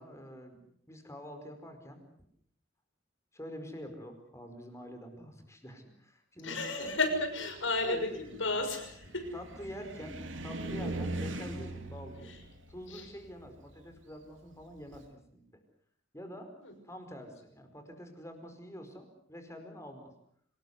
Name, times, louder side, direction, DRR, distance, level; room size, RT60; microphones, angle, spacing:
voice 1, 0.0-2.0 3.3-6.6 7.8-8.2 9.1-12.3 12.7-15.6 16.1-16.6 16.8-20.1, equal, 15° left, 6 dB, 4.8 m, -46 dB
voice 2, 6.4-9.3 12.3-12.4 12.9-13.1 16.6-16.7, left 2 dB, 85° left, 7 dB, 6.4 m, -33 dB
Car, 6.8-15.1, right 2 dB, 85° right, 3.4 m, -42 dB
26.0 x 20.0 x 8.1 m, 0.66 s
head